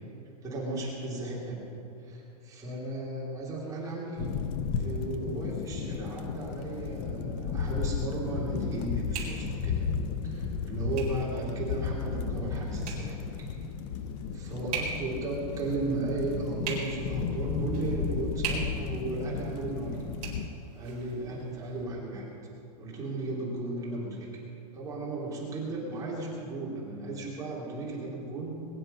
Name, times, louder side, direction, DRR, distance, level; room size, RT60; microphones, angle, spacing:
voice 1, 0.4-1.6 2.0-4.3 4.7-9.9 10.2-13.2 14.3-20.1 20.7-22.2 22.8-24.3 24.7-28.5, right 2 dB, 15° right, -5 dB, 3.0 m, -35 dB
sound 1, 4.2-20.5, left 6 dB, 35° left, 0.7 m, -34 dB
sound 2, 6.7-21.8, right 4 dB, 35° right, 4.6 m, -43 dB
21.5 x 10.5 x 5.5 m, 2.9 s
supercardioid pair, 160°, 21 cm